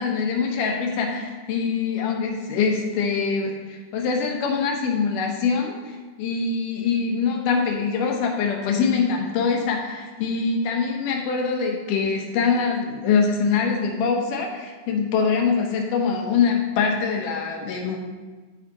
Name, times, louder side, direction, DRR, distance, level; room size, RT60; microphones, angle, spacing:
voice 1, 0.0-18.0, left 5 dB, 70° left, 1 dB, 2.6 m, -24 dB
13.0 x 5.0 x 4.2 m, 1.3 s
omnidirectional pair, 4.1 m